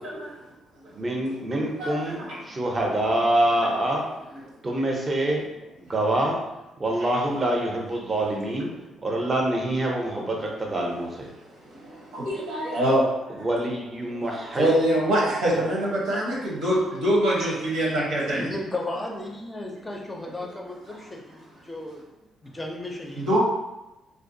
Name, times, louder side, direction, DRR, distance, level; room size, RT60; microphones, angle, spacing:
voice 1, 0.9-4.0 4.6-5.4 5.8-6.4 6.8-8.7 9.0-11.3 13.4-14.7 15.5-15.6, right 1 dB, 30° right, 0 dB, 0.6 m, -25 dB
voice 2, 12.1-13.0 14.6-18.4 23.2-23.4, right 1 dB, 85° right, -5 dB, 0.9 m, -23 dB
voice 3, 18.4-22.0 22.4-23.4, left 2 dB, 20° left, 0 dB, 0.5 m, -34 dB
2.5 x 2.2 x 2.6 m, 0.97 s
cardioid pair, 90°, 0 cm